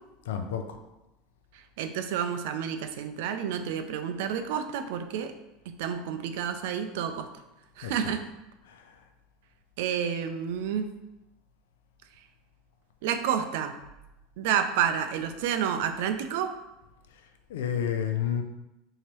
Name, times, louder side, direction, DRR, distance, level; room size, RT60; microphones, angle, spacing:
voice 1, 0.3-0.8 7.8-8.1 17.5-18.4, left 8 dB, 90° left, 6 dB, 0.4 m, -30 dB
voice 2, 1.8-5.3 5.7-7.3 7.8-8.2 9.8-10.9 13.0-13.7 14.4-16.5, right 8 dB, 75° right, 8 dB, 0.4 m, -29 dB
3.0 x 2.8 x 4.5 m, 0.95 s
supercardioid pair, 115°, 0 cm